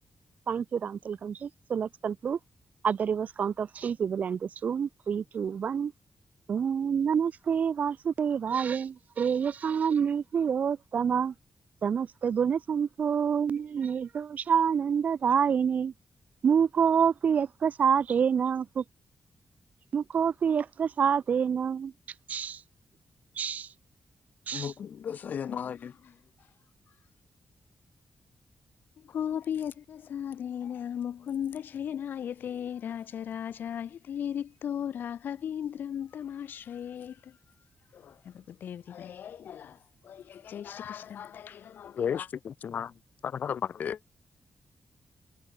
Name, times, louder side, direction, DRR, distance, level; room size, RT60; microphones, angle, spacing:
voice 1, 0.5-2.4 2.8-5.9 6.5-11.3 11.8-15.9 16.4-18.8 19.9-21.9 22.3-22.6 23.4-23.7 24.5-24.7, right 7 dB, 50° right, 2.3 m, -27 dB
voice 2, 24.5-25.9 42.0-42.9 43.2-44.0, left 8 dB, 60° left, 3.5 m, -33 dB
voice 3, 29.0-37.4 37.9-42.3, left 9 dB, 85° left, 6.8 m, -37 dB
wide cardioid pair, 180°, 3 cm